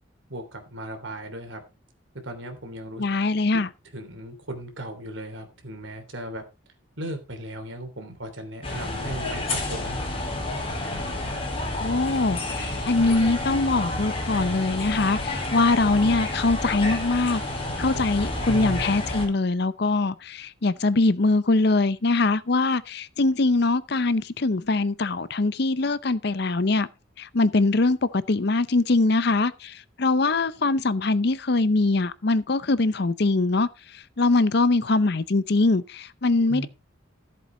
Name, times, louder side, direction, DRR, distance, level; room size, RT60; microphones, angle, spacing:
voice 1, 0.3-1.6 2.2-3.0 3.5-3.6 3.9-6.4 7.0-10.0 17.9-18.1 18.5-18.9 36.4-36.7, right 1 dB, 70° right, 3.2 m, -36 dB
voice 2, 3.0-3.7 11.8-17.4 17.8-26.9 27.2-33.7 34.2-36.7, left 3 dB, 55° left, 0.7 m, -22 dB
sound 1, 8.6-19.3, left 2 dB, 30° left, 4.2 m, -30 dB
14.5 x 7.8 x 3.9 m
head